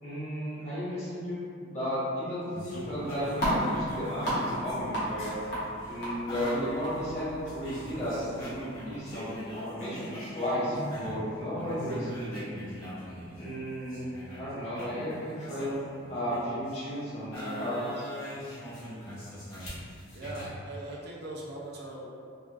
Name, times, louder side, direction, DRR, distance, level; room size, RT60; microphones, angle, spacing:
voice 1, 0.0-1.4 1.7-5.4 5.9-8.5 8.8-12.6 13.4-14.1 14.4-15.8 16.1-18.1, equal, 30° left, -11 dB, 1.1 m, -34 dB
sound 1, 2.5-11.3 11.5-16.8 17.3-20.5, equal, 80° left, 1.2 m, -41 dB
sound 2, 2.8-9.5, equal, 55° left, 1.0 m, -35 dB
voice 2, 20.1-22.3, right 1 dB, 50° right, -4 dB, 0.4 m, -40 dB
3.4 x 2.3 x 2.3 m, 2.5 s
head